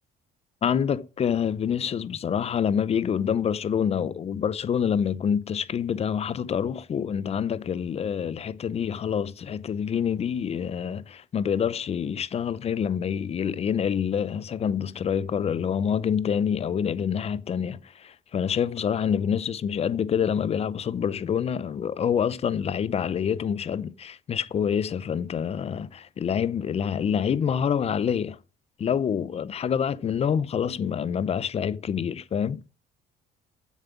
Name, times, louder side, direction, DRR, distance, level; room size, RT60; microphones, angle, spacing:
voice 1, 0.6-28.4 28.8-32.6, left 8 dB, 35° left, 0.6 m, -27 dB
7.6 x 7.1 x 7.1 m
cardioid pair, 110°, 17 cm